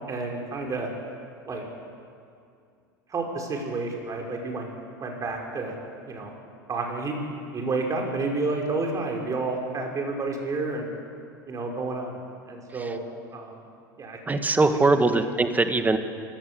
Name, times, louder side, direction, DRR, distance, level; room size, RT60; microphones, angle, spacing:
voice 1, 0.1-0.9 1.5-1.6 3.1-4.7 5.0-5.7 6.1-6.3 6.7-7.2 7.5-10.9 11.5-13.0 13.3-13.6 14.0-14.4 15.1-15.2, right 3 dB, 30° right, 1 dB, 5.8 m, -30 dB
voice 2, 14.3-16.0, right 3 dB, 15° right, 8 dB, 2.0 m, -22 dB
23.0 x 17.5 x 7.9 m, 2.4 s
hypercardioid pair, 80°, 11 cm